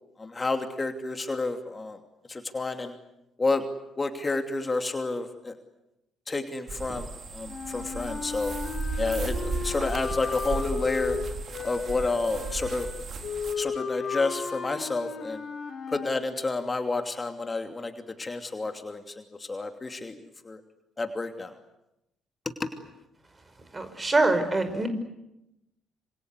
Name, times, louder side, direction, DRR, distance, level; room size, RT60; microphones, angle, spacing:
voice 1, 0.2-2.0 2.3-2.9 3.4-3.6 4.0-5.5 6.3-7.1 7.3-8.5 9.0-11.2 11.6-12.9 13.6-15.4 15.9-17.9 18.2-19.0 19.5-20.1 20.5-20.6 21.0-21.5 22.6-22.7, left 3 dB, 25° left, 6 dB, 2.7 m, -29 dB
sound 1, 6.7-13.5, right 4 dB, 50° right, 3.9 m, -35 dB
sound 2, 7.5-16.2, left 6 dB, 50° left, 4.4 m, -35 dB
voice 2, 23.7-24.9, right 2 dB, 25° right, 9 dB, 5.4 m, -24 dB
27.0 x 26.0 x 8.2 m, 0.89 s
hypercardioid pair, 45°, 0 cm